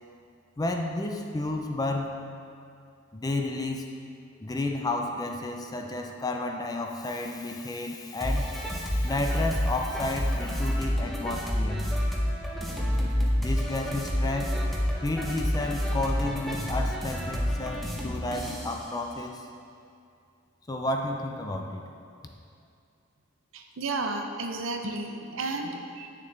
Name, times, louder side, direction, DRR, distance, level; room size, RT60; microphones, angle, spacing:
voice 1, 0.6-2.2 3.1-3.9 4.4-11.9 13.4-14.6 15.0-19.5 20.7-21.8, left 2 dB, 20° left, 3 dB, 0.4 m, -31 dB
sound 1, 8.2-18.8, equal, ahead, 0.8 m, -29 dB
voice 2, 23.5-26.1, right 3 dB, 75° right, 4 dB, 0.7 m, -32 dB
8.5 x 6.6 x 3.3 m, 2.4 s
head